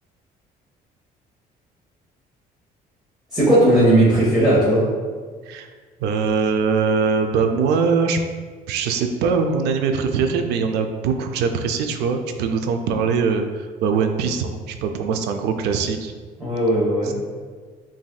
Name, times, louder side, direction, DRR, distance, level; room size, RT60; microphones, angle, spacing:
voice 1, 3.3-4.8 16.4-17.1, right 1 dB, 5° right, -10 dB, 1.4 m, -16 dB
voice 2, 6.0-8.2 8.7-16.1 17.0-17.1, right 5 dB, 85° right, 6 dB, 0.4 m, -22 dB
7.2 x 2.6 x 2.3 m, 1.5 s
cardioid pair, 110°, 17 cm